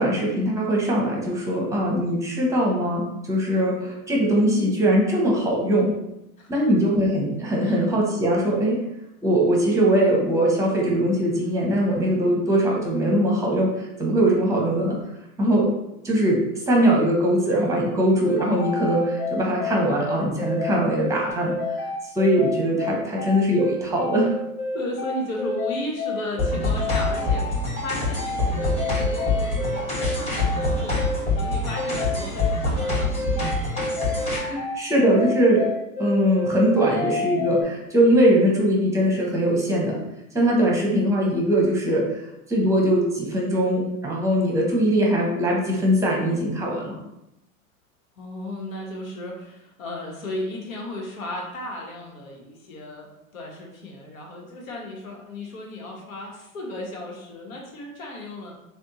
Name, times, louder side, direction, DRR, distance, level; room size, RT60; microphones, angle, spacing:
voice 1, 0.0-5.9 6.5-8.8 9.2-15.0 15.4-15.7 16.0-21.9 22.1-24.3 34.3-35.7 36.0-40.0 40.3-42.2 42.5-47.0, right 1 dB, 5° right, -2 dB, 0.8 m, -21 dB
sound 1, 18.2-37.6, left 3 dB, 45° left, 0.6 m, -29 dB
voice 2, 24.7-27.6 27.8-33.5 48.2-53.1 53.3-58.5, left 1 dB, 75° left, -1 dB, 1.1 m, -35 dB
sound 2, 26.4-34.4, left 2 dB, 15° left, 1.1 m, -26 dB
3.4 x 2.1 x 2.7 m, 0.87 s
hypercardioid pair, 100°, 42 cm